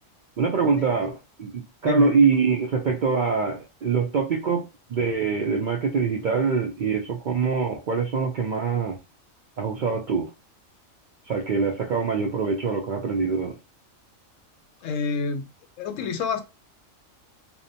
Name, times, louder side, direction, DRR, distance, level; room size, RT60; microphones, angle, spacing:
voice 1, 0.4-9.0 9.6-10.3 11.2-13.6, right 5 dB, 80° right, 0.4 m, -24 dB
voice 2, 14.8-15.5 15.8-16.4, left 5 dB, 80° left, 0.9 m, -28 dB
2.6 x 2.1 x 2.6 m
omnidirectional pair, 1.4 m